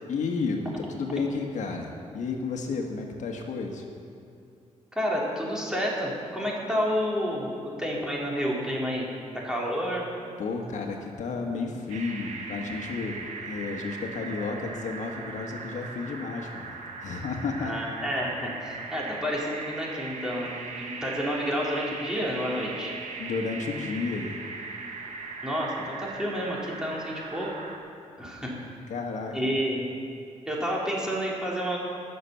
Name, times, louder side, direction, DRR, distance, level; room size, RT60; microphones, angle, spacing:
voice 1, 0.1-3.9 10.4-16.7 17.0-17.7 23.2-24.4 28.9-29.5, left 4 dB, 70° left, 2 dB, 1.5 m, -32 dB
voice 2, 4.9-9.1 9.4-10.0 17.6-20.5 20.8-22.9 25.4-27.5 28.2-28.5 29.3-29.8 30.4-31.8, equal, 5° right, -4 dB, 3.5 m, -29 dB
sound 1, 11.9-27.8, right 4 dB, 70° right, 1.5 m, -39 dB
18.0 x 6.8 x 7.0 m, 2.5 s
cardioid pair, 90°, 13 cm